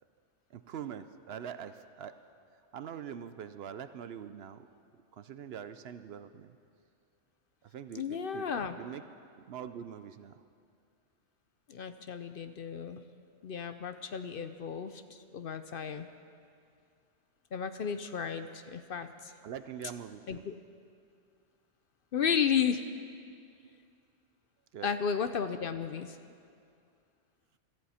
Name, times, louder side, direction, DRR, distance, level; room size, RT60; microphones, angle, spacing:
voice 1, 0.5-2.1 2.7-4.7 5.1-6.6 7.6-8.5 8.8-9.0 9.5-10.4 19.4-20.4 23.6-23.8 24.7-24.9, right 8 dB, 65° right, 11 dB, 0.8 m, -43 dB
voice 2, 7.9-8.8 11.7-13.0 13.4-15.0 15.3-16.1 17.5-19.3 20.3-20.5 22.1-22.9 24.8-26.2, left 7 dB, 55° left, 9 dB, 0.7 m, -33 dB
23.5 x 13.5 x 4.3 m, 2.3 s
omnidirectional pair, 1.2 m